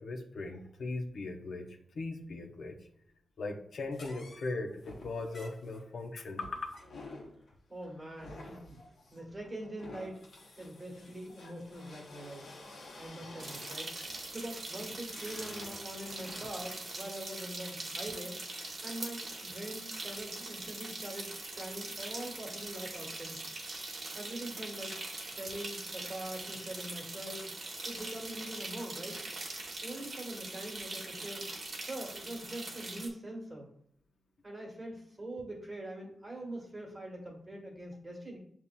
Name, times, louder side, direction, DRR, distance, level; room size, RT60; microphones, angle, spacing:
voice 1, 0.0-1.7 1.9-2.8 3.4-6.8 8.8-8.9 11.4-11.5, left 3 dB, 70° left, 3 dB, 0.6 m, -39 dB
sound 1, 3.9-16.9, left 2 dB, 90° left, 1.1 m, -51 dB
voice 2, 7.7-8.8 9.1-10.2 10.6-23.4 24.1-27.5 27.8-29.2 29.8-31.5 31.8-33.7 34.4-38.4, right 1 dB, 25° right, -1 dB, 1.3 m, -43 dB
sound 2, 13.4-33.1, right 2 dB, 50° right, 0.9 m, -42 dB
7.0 x 2.8 x 2.2 m, 0.69 s
wide cardioid pair, 115°, 0 cm